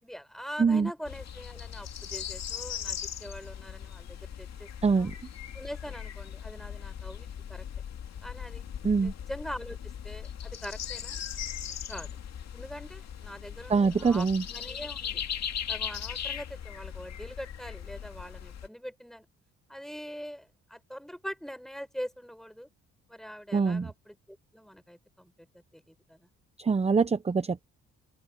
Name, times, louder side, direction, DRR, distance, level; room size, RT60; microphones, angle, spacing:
voice 1, 0.0-5.1 5.5-7.6 8.2-8.6 9.0-9.8 10.0-11.2 11.9-12.2 12.5-15.2 15.7-19.3 19.7-22.7 23.1-25.3 25.7-26.3, equal, ahead, 5.8 m, -43 dB
voice 2, 0.6-0.9 4.8-5.1 8.8-9.1 13.7-14.4 23.5-23.9 26.6-27.6, right 5 dB, 20° right, 0.8 m, -24 dB
sound 1, 1.0-18.7, left 9 dB, 60° left, 2.4 m, -39 dB
open air
cardioid pair, 90°, 30 cm